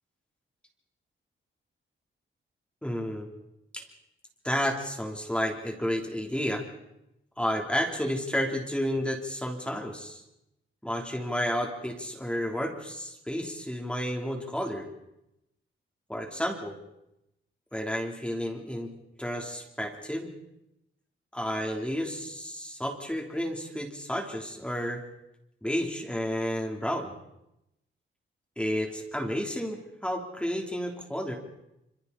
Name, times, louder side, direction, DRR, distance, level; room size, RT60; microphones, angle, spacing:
voice 1, 2.8-3.3 3.7-3.8 4.4-6.6 7.4-10.2 10.8-14.9 16.1-16.8 17.7-18.9 19.2-20.3 21.3-25.0 25.6-27.1 28.6-31.4, equal, 5° left, 0 dB, 3.5 m, -31 dB
28.5 x 27.0 x 4.2 m, 0.85 s
wide cardioid pair, 165°, 21 cm